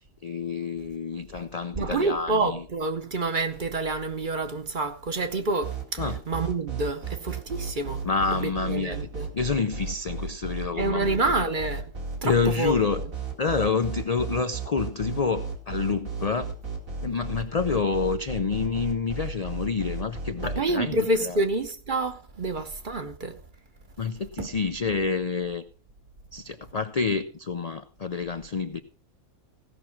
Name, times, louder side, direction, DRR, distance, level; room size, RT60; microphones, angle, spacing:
voice 1, 0.2-2.6 6.0-6.2 8.0-9.1 9.3-11.4 12.2-13.0 13.4-16.5 17.0-21.4 24.0-25.6 26.3-28.8, left 5 dB, 50° left, 0.4 m, -28 dB
voice 2, 1.8-6.0 6.3-8.0 8.4-9.3 10.8-11.8 12.2-12.8 20.4-23.3 24.4-24.5, right 2 dB, 40° right, 1.0 m, -28 dB
sound 1, 5.6-20.6, right 4 dB, 75° right, 2.8 m, -34 dB
16.5 x 6.1 x 5.9 m
omnidirectional pair, 1.4 m